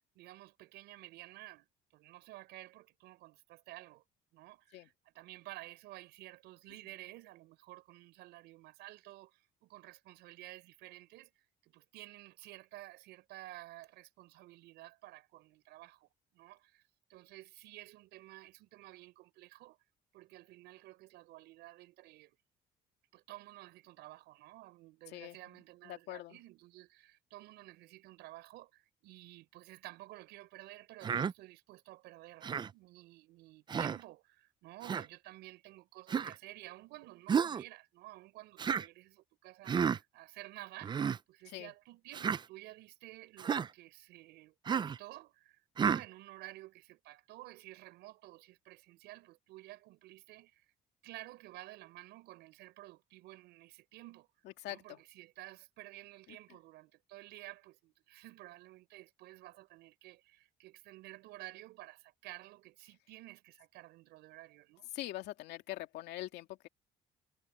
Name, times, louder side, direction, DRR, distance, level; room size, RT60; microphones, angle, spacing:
voice 1, 0.1-4.0 4.3-11.3 11.6-16.8 17.1-19.8 20.1-22.4 23.1-41.0 41.3-50.6 51.0-54.3 54.7-64.9, right 18 dB, 90° right, 5.2 m, -52 dB
voice 2, 25.1-26.4 41.5-41.7 54.4-55.0 56.3-56.6 64.9-66.7, left 15 dB, 85° left, 2.4 m, -44 dB
Human voice, 31.0-31.3 32.4-32.7 33.7-34.0 34.8-35.1 36.1-36.4 37.3-37.6 38.6-38.9 39.7-40.0 40.8-41.2 42.1-42.4 43.4-43.7 44.7-45.0 45.8-46.0, right 7 dB, 25° right, 0.4 m, -32 dB
cardioid pair, 110°, 17 cm